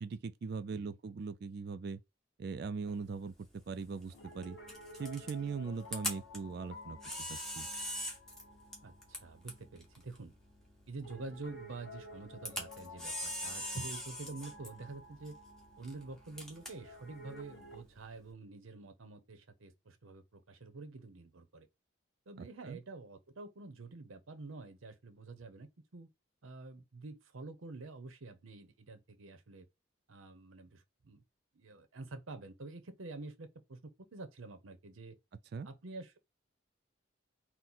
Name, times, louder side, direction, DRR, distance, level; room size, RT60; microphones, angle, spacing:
voice 1, 0.0-2.0 2.4-3.3 3.7-4.6 4.9-7.0 7.3-7.7 22.6-22.8 35.5-35.7, right 5 dB, 50° right, 0.3 m, -40 dB
Camera, 2.8-18.3, equal, ahead, 0.9 m, -45 dB
Piano, 4.1-17.8, left 2 dB, 60° left, 0.9 m, -53 dB
voice 2, 8.8-10.3 10.9-15.4 15.8-21.7 22.3-26.1 26.4-29.7 30.1-31.2 31.5-35.2 35.6-36.2, right 3 dB, 80° right, 0.7 m, -48 dB
3.9 x 2.1 x 4.3 m
head